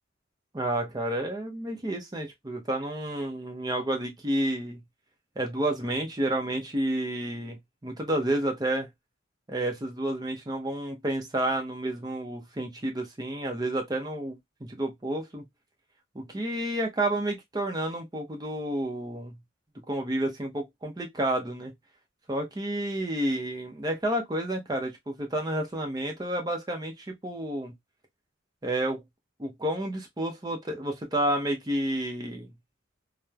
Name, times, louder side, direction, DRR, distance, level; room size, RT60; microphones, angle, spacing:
voice 1, 0.5-4.8 5.4-8.9 9.5-15.4 16.1-19.4 19.9-21.7 22.3-27.7 28.6-29.0 29.4-32.5, right 1 dB, 20° right, 0.6 m, -30 dB
3.0 x 2.0 x 2.2 m
head